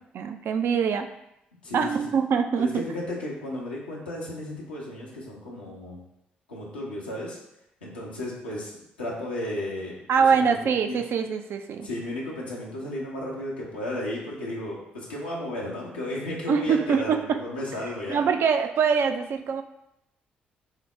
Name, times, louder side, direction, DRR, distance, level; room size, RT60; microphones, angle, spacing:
voice 1, 0.1-1.1 1.7-2.8 10.1-11.9 16.5-17.4 18.1-19.6, right 6 dB, 50° right, 6 dB, 0.3 m, -24 dB
voice 2, 2.6-6.0 6.5-7.4 7.8-10.6 10.8-11.0 11.8-18.2, left 1 dB, 85° left, -5 dB, 0.7 m, -34 dB
4.7 x 2.0 x 3.2 m, 0.82 s
figure-of-eight pair, 40°, 5 cm